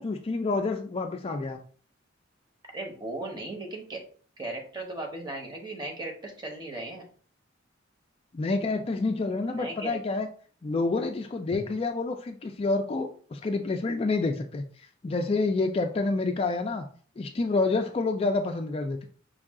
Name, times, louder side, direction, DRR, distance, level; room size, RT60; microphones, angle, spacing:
voice 1, 0.0-1.6 8.3-10.3 10.6-16.9 17.2-19.0, left 3 dB, 30° left, 4 dB, 0.3 m, -28 dB
voice 2, 2.7-4.0 4.4-7.0 9.5-10.0, right 2 dB, 20° right, 1 dB, 1.0 m, -37 dB
5.3 x 2.4 x 3.6 m, 0.43 s
head